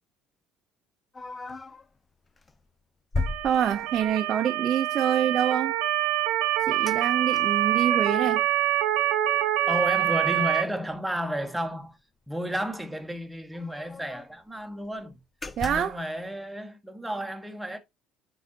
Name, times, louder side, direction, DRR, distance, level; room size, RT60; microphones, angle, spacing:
sound 1, 1.1-1.9 2.4-2.6 3.1-4.3 6.9-7.0 7.3-8.4 8.8-10.6 10.9-11.0 11.4-11.6 12.7-12.8 13.0-13.1 13.5-14.4 14.8-15.0 15.4-16.0, left 3 dB, 25° left, 0.6 m, -37 dB
Motor vehicle (road) / Siren, 3.2-10.6, right 13 dB, 70° right, 0.8 m, -25 dB
voice 1, 3.4-5.7 6.6-8.4 15.6-16.0, right 9 dB, 50° right, 0.6 m, -26 dB
voice 2, 9.7-12.0 12.3-15.2 15.6-17.8, equal, 5° right, 1.4 m, -32 dB
9.0 x 4.0 x 2.8 m
hypercardioid pair, 65°, 0 cm